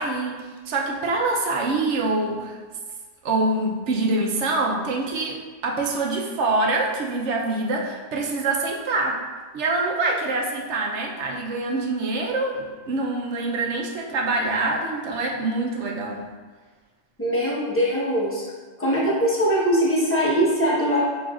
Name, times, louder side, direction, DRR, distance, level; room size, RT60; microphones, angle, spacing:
voice 1, 0.0-2.6 3.2-5.4 5.6-9.2 9.5-16.2, right 2 dB, 70° right, 0 dB, 1.0 m, -25 dB
voice 2, 17.2-18.4 18.8-21.0, equal, 10° left, -7 dB, 1.0 m, -21 dB
6.3 x 3.0 x 2.4 m, 1.4 s
omnidirectional pair, 1.3 m